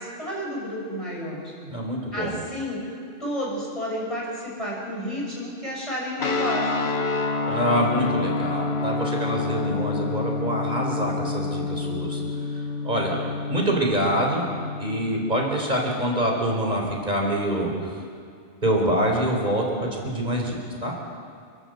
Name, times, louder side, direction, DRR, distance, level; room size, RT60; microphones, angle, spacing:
voice 1, 0.0-1.5 2.1-2.9 3.2-6.8 12.2-12.3, equal, 25° left, -4 dB, 6.7 m, -31 dB
voice 2, 1.6-2.4 7.5-12.2 12.5-13.2 13.5-14.5 14.8-17.9 18.6-20.9, right 1 dB, 35° right, 0 dB, 4.3 m, -25 dB
sound 1, 6.2-16.5, left 3 dB, 55° left, 1.4 m, -28 dB
29.5 x 12.0 x 7.9 m, 2.3 s
omnidirectional pair, 1.3 m